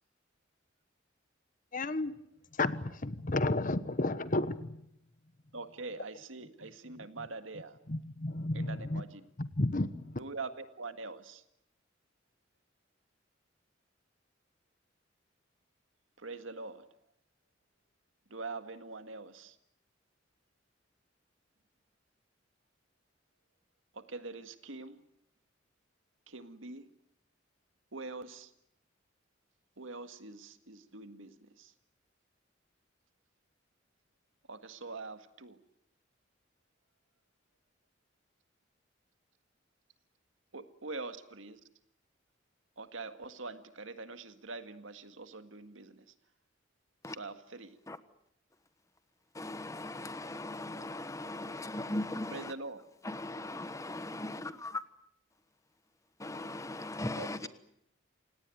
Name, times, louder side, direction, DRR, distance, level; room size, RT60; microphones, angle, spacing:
voice 1, 1.7-2.2 2.5-4.9 6.9-7.3 7.9-9.0 9.4-10.2, left 2 dB, 45° left, 1.2 m, -33 dB
voice 2, 5.5-7.8 8.5-9.2 10.2-11.4 16.2-16.8 18.3-19.6 23.9-25.0 26.3-26.9 27.9-28.5 29.8-31.7 34.5-35.6 40.5-41.6 42.8-46.1 47.2-47.8 52.3-52.8 57.2-57.5, right 3 dB, 90° right, 1.9 m, -44 dB
voice 3, 49.3-52.5 53.0-54.8 56.2-57.5, left 2 dB, 15° left, 1.3 m, -38 dB
28.5 x 18.0 x 9.3 m
head